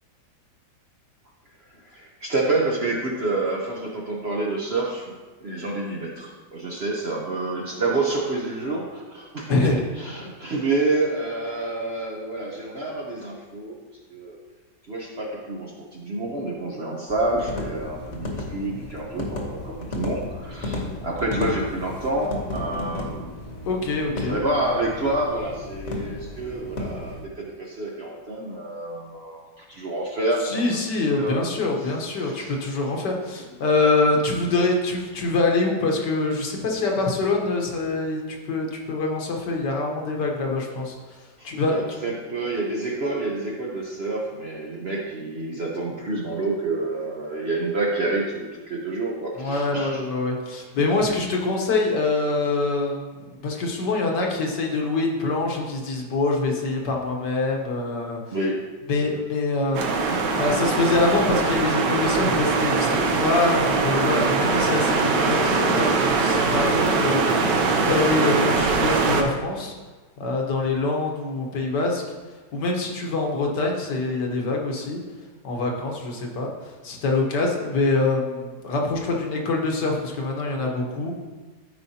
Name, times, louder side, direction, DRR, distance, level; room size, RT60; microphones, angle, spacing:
voice 1, 1.7-5.1 5.4-13.8 14.1-14.4 14.9-23.3 24.2-30.6 31.2-31.9 32.2-32.6 41.4-50.0 58.3-58.7, right 2 dB, 45° right, -2 dB, 0.8 m, -28 dB
sound 1, 17.1-27.2, left 2 dB, 45° left, 1.3 m, -34 dB
voice 2, 23.7-24.4 30.4-41.8 49.4-58.2 58.9-69.7 70.2-72.0 72.5-75.0 75.4-81.1, left 3 dB, 70° left, 1 dB, 1.7 m, -25 dB
sound 2, 59.7-69.2, right 4 dB, 75° right, 1.4 m, -22 dB
12.5 x 4.9 x 2.8 m, 1.3 s
omnidirectional pair, 1.9 m